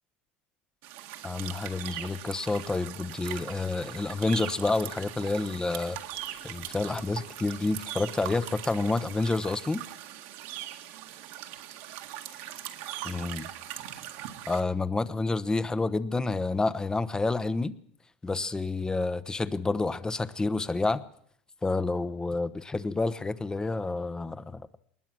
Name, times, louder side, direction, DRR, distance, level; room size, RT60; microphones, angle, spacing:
sound 1, 0.8-14.6, right 13 dB, 70° right, 1.9 m, -41 dB
voice 1, 1.2-6.0 6.4-9.8 13.0-13.5 14.5-17.7 18.2-21.0 21.6-24.7, left 3 dB, 15° left, 15 dB, 1.0 m, -29 dB
sound 2, 2.3-3.4 5.9-7.7, left 9 dB, 75° left, 5.9 m, -57 dB
21.0 x 20.0 x 6.2 m, 0.65 s
supercardioid pair, 100°, 5 cm